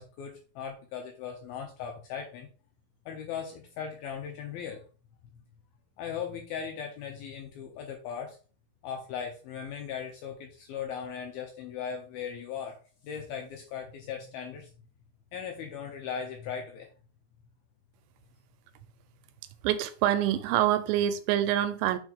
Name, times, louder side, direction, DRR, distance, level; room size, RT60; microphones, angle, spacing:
voice 1, 0.0-2.5 3.1-4.8 5.2-5.4 6.0-8.4 8.8-12.8 13.0-14.7 15.3-16.9, left 7 dB, 80° left, 2.2 m, -38 dB
voice 2, 19.6-22.0, right 12 dB, 85° right, 2.7 m, -26 dB
6.4 x 4.3 x 3.5 m
omnidirectional pair, 5.1 m